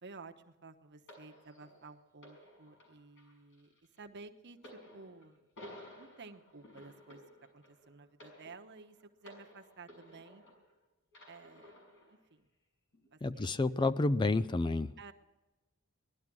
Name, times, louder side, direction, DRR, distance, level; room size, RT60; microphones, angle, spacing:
voice 1, 0.0-3.7 3.9-5.5 5.9-7.2 7.5-10.4 11.3-11.7 12.1-12.5 13.1-13.6 15.0-15.1, right 4 dB, 55° right, 6 dB, 1.1 m, -53 dB
sound 1, 1.1-10.7 11.1-12.1 12.9-13.1, left 1 dB, 60° left, 6.4 m, -56 dB
voice 2, 13.2-15.0, left 2 dB, 20° left, 14 dB, 0.4 m, -30 dB
18.5 x 12.0 x 6.2 m, 1.1 s
head